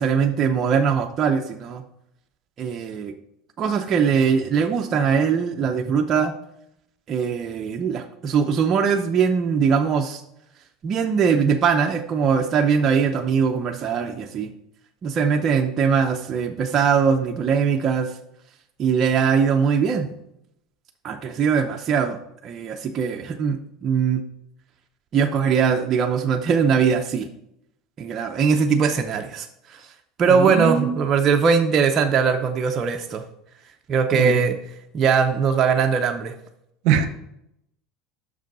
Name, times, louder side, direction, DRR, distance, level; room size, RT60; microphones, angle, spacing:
voice 1, 0.0-1.8 2.6-3.1 3.6-6.3 7.1-10.2 10.8-14.5 15.0-18.1 18.8-20.1 21.0-22.2 22.4-24.2 25.1-27.3 28.0-29.9 30.2-33.2 33.9-34.6 34.9-36.3, right 6 dB, 35° right, 4 dB, 0.6 m, -21 dB
voice 2, 30.3-31.0 34.1-34.4 36.8-37.1, right 8 dB, 65° right, 10 dB, 0.8 m, -22 dB
6.2 x 5.1 x 5.3 m, 0.79 s
supercardioid pair, 125°, 0 cm